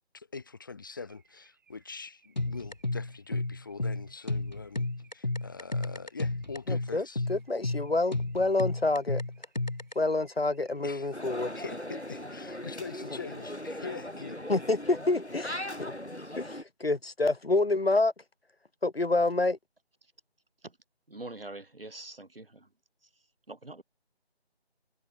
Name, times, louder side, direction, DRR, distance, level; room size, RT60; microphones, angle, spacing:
voice 1, 0.1-4.9 5.1-7.2 10.8-11.1 11.5-14.4, left 4 dB, 20° left, 2.8 m, -43 dB
Car / Alarm, 0.9-15.0, right 7 dB, 15° right, 6.8 m, -67 dB
sound 1, 2.4-9.9, left 2 dB, 40° left, 1.6 m, -32 dB
voice 2, 6.7-9.2 9.9-11.5 14.5-15.9 16.3-18.1 18.8-19.6, left 2 dB, 65° left, 1.3 m, -28 dB
sound 2, 11.1-16.6, left 1 dB, 90° left, 6.1 m, -39 dB
voice 3, 21.1-22.7 23.0-23.8, right 2 dB, 60° right, 3.4 m, -45 dB
figure-of-eight pair, 165°, 33 cm